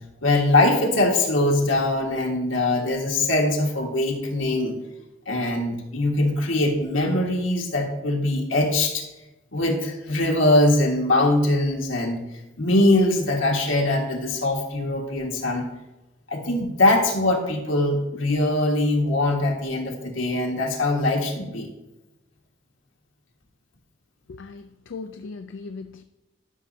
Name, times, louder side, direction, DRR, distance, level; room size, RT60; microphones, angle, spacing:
voice 1, 0.2-4.8 5.3-9.1 9.5-12.2 12.6-15.7 16.3-21.7, left 2 dB, 85° left, 1.8 m, -22 dB
voice 2, 24.3-26.0, left 4 dB, 70° left, 0.4 m, -38 dB
12.0 x 6.2 x 2.8 m
head